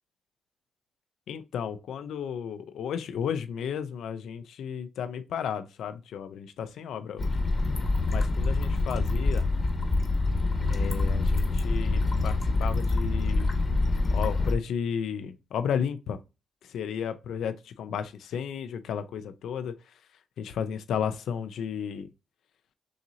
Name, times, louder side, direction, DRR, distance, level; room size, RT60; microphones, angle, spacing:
voice 1, 1.3-7.3 8.1-9.5 10.7-13.5 14.1-16.2 16.6-19.8 20.4-22.1, left 8 dB, 80° left, 0.6 m, -33 dB
sound 1, 7.2-14.5, left 2 dB, 35° left, 1.2 m, -26 dB
6.4 x 3.0 x 2.8 m
cardioid pair, 95°, 0 cm